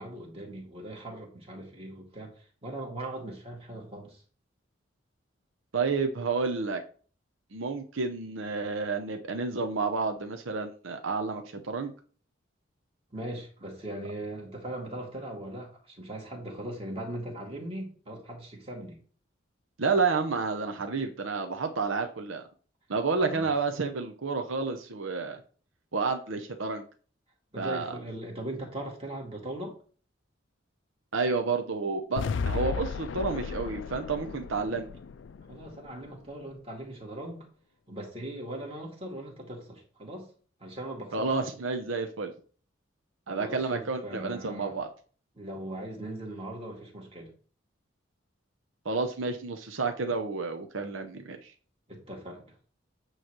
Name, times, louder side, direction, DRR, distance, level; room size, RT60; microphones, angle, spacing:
voice 1, 0.0-4.2 13.1-19.0 23.2-23.5 27.5-29.7 35.5-37.5 37.9-40.3 40.6-41.4 43.3-44.7 45.4-47.3 51.9-52.4, right 1 dB, 30° right, 0 dB, 2.0 m, -39 dB
voice 2, 5.7-6.8 7.5-11.9 19.8-22.5 22.9-25.4 25.9-26.8 27.6-28.0 31.1-34.9 41.1-42.3 43.3-44.9 48.8-51.5, right 4 dB, 85° right, 5 dB, 0.8 m, -30 dB
sound 1, 32.2-36.3, left 5 dB, 70° left, 0.4 m, -35 dB
9.0 x 3.2 x 6.1 m, 0.41 s
head